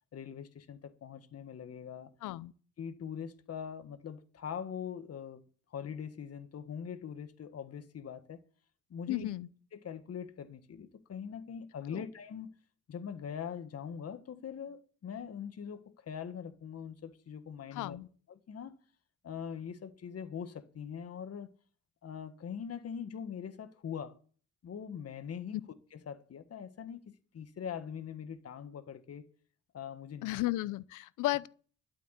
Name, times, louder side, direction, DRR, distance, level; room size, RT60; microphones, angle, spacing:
voice 1, 0.1-2.1 2.8-5.4 5.7-8.4 8.9-9.3 9.7-12.5 12.9-18.0 18.3-18.8 19.2-21.5 22.0-24.2 24.6-25.6 25.9-29.3 29.7-30.3, left 7 dB, 55° left, 1.7 m, -42 dB
voice 2, 2.2-2.5 9.1-9.5 11.9-12.0 17.7-18.1 25.5-25.6 30.2-31.5, left 17 dB, 90° left, 0.7 m, -34 dB
12.0 x 8.3 x 8.2 m
cardioid pair, 90°, 30 cm